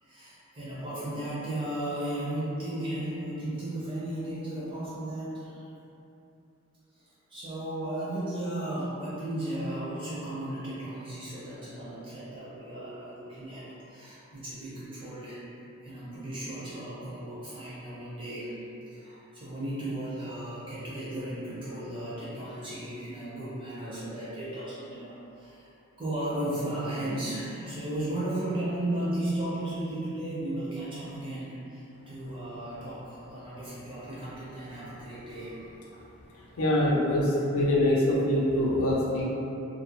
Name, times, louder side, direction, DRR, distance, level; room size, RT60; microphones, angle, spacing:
voice 1, 0.0-5.6 7.3-15.4 15.8-18.6 18.9-25.7 26.0-35.7, right 1 dB, 25° right, -10 dB, 0.6 m, -35 dB
voice 2, 36.6-39.2, left 1 dB, 75° left, -5 dB, 0.5 m, -24 dB
2.4 x 2.0 x 2.9 m, 2.8 s
head